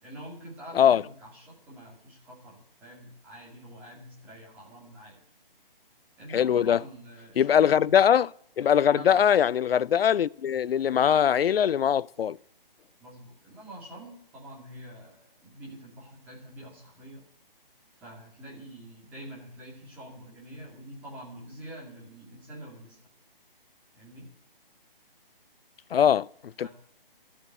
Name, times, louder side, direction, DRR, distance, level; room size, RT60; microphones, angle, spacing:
voice 1, 0.0-5.2 6.2-8.0 8.9-9.4 13.0-17.2 18.0-23.0 23.9-24.3 26.6-26.7, right 1 dB, 5° right, 2.3 m, -46 dB
voice 2, 6.3-6.8 7.4-8.3 8.6-12.4 25.9-26.3 26.6-26.7, left 9 dB, 80° left, 0.5 m, -21 dB
13.5 x 8.6 x 9.0 m
hypercardioid pair, 175°, 29 cm